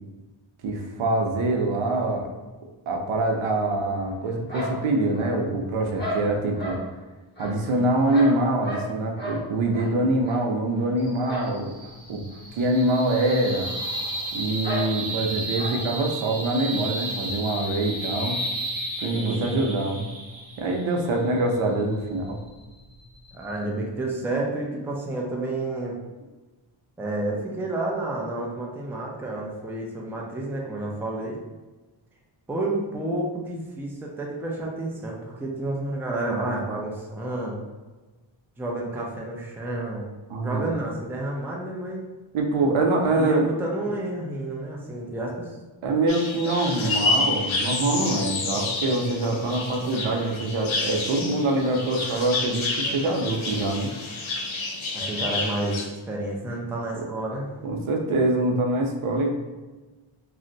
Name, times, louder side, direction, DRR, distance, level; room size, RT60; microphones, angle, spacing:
voice 1, 0.6-2.3 2.9-6.8 7.4-11.8 12.1-12.2 12.5-13.7 14.3-18.4 19.0-20.1 20.6-22.4 40.3-40.7 42.3-43.5 45.8-53.9 56.9-57.1 57.6-59.4, right 2 dB, 85° right, 2 dB, 0.6 m, -24 dB
sound 1, 4.5-5.5 6.0-6.8 7.4-8.9 9.2-9.4 9.7-9.9 10.2-10.4 11.2-11.5 11.8-11.9 12.3-12.4 13.2-13.4 13.6-13.7 14.6-14.9 15.5-15.8, equal, 20° left, 0.9 m, -33 dB
sound 2, 11.0-23.6, right 1 dB, 40° right, 0.8 m, -34 dB
voice 2, 19.1-19.6 23.3-26.0 27.0-31.4 32.5-37.7 38.6-40.1 40.4-42.0 43.2-45.5 54.9-57.5, right 2 dB, 5° right, -2 dB, 0.3 m, -30 dB
sound 3, 46.1-55.9, left 3 dB, 75° left, 0.7 m, -29 dB
2.6 x 2.1 x 3.8 m, 1.2 s
wide cardioid pair, 130°, 48 cm